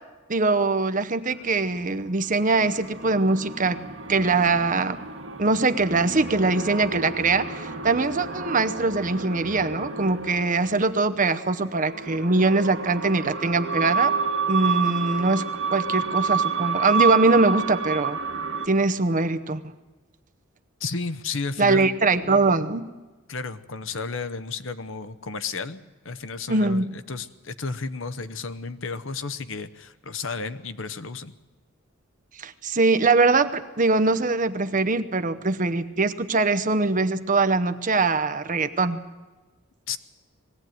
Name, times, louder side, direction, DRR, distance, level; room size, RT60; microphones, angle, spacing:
voice 1, 0.3-3.8 4.1-5.0 5.4-14.1 14.5-18.2 18.7-19.6 21.6-22.9 26.5-26.9 32.4-39.0, right 3 dB, 35° right, 11 dB, 0.8 m, -22 dB
sound 1, 1.7-10.9 11.6-18.7, right 5 dB, 60° right, 2.1 m, -29 dB
voice 2, 20.8-22.0 23.3-31.3 39.9-40.0, left 4 dB, 60° left, 13 dB, 0.9 m, -33 dB
21.0 x 16.5 x 9.2 m, 1.2 s
head